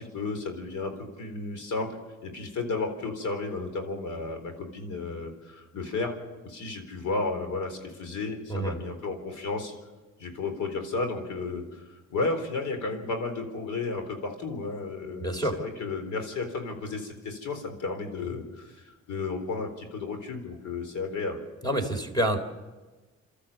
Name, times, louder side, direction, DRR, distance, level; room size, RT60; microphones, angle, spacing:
voice 1, 0.0-1.9 2.2-6.2 6.4-9.7 10.2-21.4, left 3 dB, 75° left, 6 dB, 4.0 m, -33 dB
voice 2, 15.2-15.6 21.6-22.4, right 1 dB, 15° left, 7 dB, 3.6 m, -27 dB
28.0 x 13.5 x 7.3 m, 1.2 s
cardioid pair, 90°, 30 cm